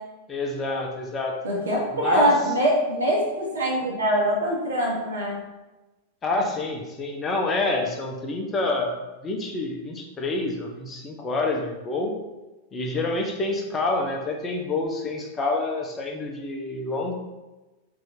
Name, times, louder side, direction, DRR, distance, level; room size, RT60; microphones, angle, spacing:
voice 1, 0.3-1.3 1.9-2.4 6.2-9.0 9.2-12.1 12.7-17.1, left 2 dB, 25° left, 1 dB, 0.6 m, -27 dB
voice 2, 1.4-5.4, equal, 70° right, -4 dB, 1.0 m, -23 dB
2.6 x 2.5 x 3.6 m, 1.1 s
figure-of-eight pair, 90°, 0 cm